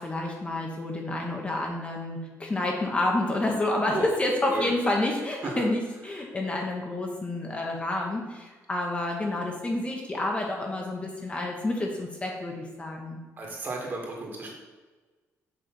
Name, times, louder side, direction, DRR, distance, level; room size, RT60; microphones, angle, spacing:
voice 1, 0.0-13.2, left 2 dB, 20° left, 0 dB, 1.0 m, -29 dB
voice 2, 13.4-14.5, right 2 dB, 35° right, -1 dB, 1.8 m, -33 dB
6.6 x 3.3 x 5.9 m, 1.3 s
cardioid pair, 125°, 6 cm